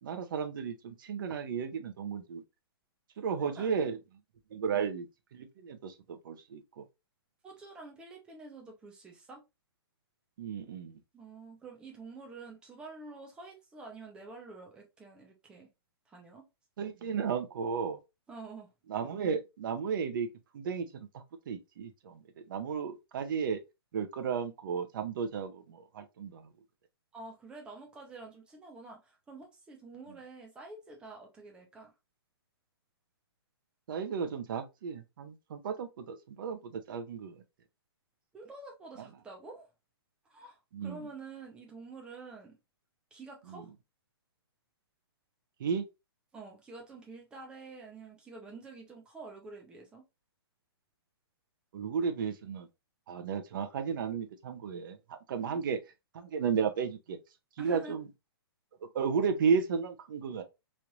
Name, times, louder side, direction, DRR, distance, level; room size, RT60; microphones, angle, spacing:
voice 1, 0.0-2.4 3.2-4.0 4.5-5.1 5.3-6.8 10.4-11.0 16.8-18.0 18.9-20.3 20.5-23.6 23.9-26.4 33.9-37.3 40.7-41.0 43.5-43.6 45.6-45.9 51.7-52.7 53.1-55.8 56.1-57.2 57.6-58.1 58.8-60.4, right 6 dB, 50° right, 0.7 m, -34 dB
voice 2, 3.2-3.9 4.7-4.9 7.4-9.4 11.1-15.7 16.1-16.5 18.3-18.7 27.1-31.9 38.3-39.7 40.2-42.6 43.1-43.7 46.3-50.0 55.4-55.6 57.6-58.0, right 3 dB, 5° right, 0.6 m, -48 dB
3.1 x 2.5 x 2.9 m
hypercardioid pair, 165°, 14 cm